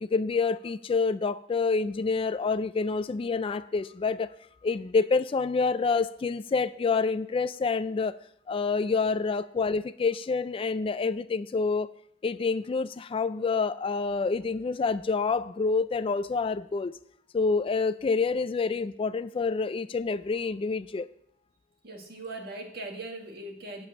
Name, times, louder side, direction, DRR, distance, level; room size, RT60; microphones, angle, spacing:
voice 1, 0.0-4.3 4.6-8.2 8.5-11.9 12.2-16.9 17.3-21.1, left 4 dB, 30° left, 0.3 m, -27 dB
voice 2, 21.8-23.9, right 2 dB, 60° right, 1.9 m, -40 dB
8.4 x 7.1 x 8.7 m
head